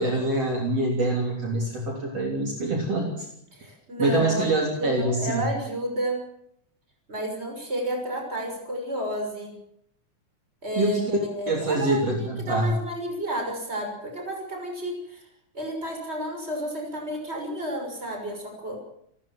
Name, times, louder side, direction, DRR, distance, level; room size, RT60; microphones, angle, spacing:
voice 1, 0.0-3.3 4.0-5.4 10.8-11.1 11.5-12.7, right 2 dB, 50° right, 0 dB, 4.2 m, -25 dB
voice 2, 3.5-4.5 4.8-6.2 7.1-9.6 10.6-15.2 15.5-18.8, equal, 20° right, 3 dB, 6.3 m, -31 dB
29.0 x 14.0 x 7.6 m, 0.73 s
omnidirectional pair, 3.7 m